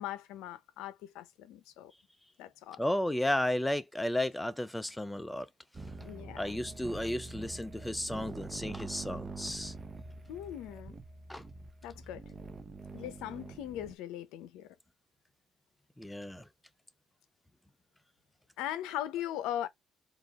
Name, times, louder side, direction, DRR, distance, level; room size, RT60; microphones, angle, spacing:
voice 1, 0.0-1.9 2.4-2.8 6.0-6.6 10.3-10.9 11.8-12.3 12.9-14.7 18.6-19.7, left 12 dB, 90° left, 0.7 m, -39 dB
voice 2, 2.8-5.5 6.4-9.7 11.3-11.4 16.0-16.4, left 1 dB, 5° left, 0.5 m, -33 dB
sound 1, 5.7-13.9, right 3 dB, 30° right, 0.8 m, -45 dB
4.0 x 2.4 x 3.5 m
cardioid pair, 95°, 0 cm